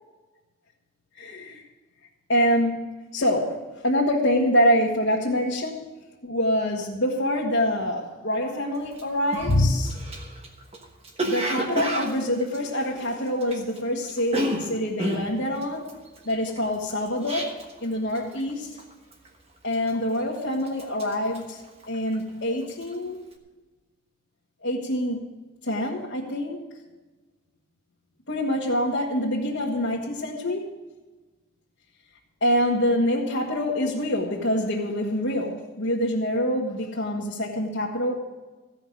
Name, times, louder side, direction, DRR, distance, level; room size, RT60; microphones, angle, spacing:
voice 1, 1.1-1.6 2.3-5.9 6.2-9.9 11.2-15.9 16.2-18.8 19.6-21.6 21.9-23.2 24.6-25.3 25.6-26.6 28.3-30.7 32.4-38.2, equal, 65° left, -4 dB, 1.6 m, -25 dB
Cough, 8.9-9.0 9.3-13.8 14.0-17.9 18.2-18.5 18.8-19.3 19.7-20.3 20.6-22.3 22.6-22.9, right 1 dB, 30° right, 1.3 m, -31 dB
15.5 x 5.6 x 8.8 m, 1.2 s
head